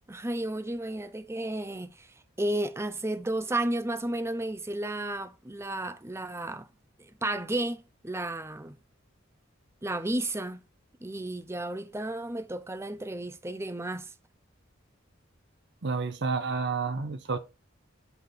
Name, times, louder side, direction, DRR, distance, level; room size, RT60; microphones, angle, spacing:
voice 1, 0.1-2.1 2.4-6.7 7.0-8.8 9.8-10.6 11.0-14.1, right 1 dB, 15° right, 0.6 m, -33 dB
voice 2, 15.8-17.4, right 4 dB, 60° right, 0.8 m, -30 dB
6.0 x 5.7 x 3.6 m
head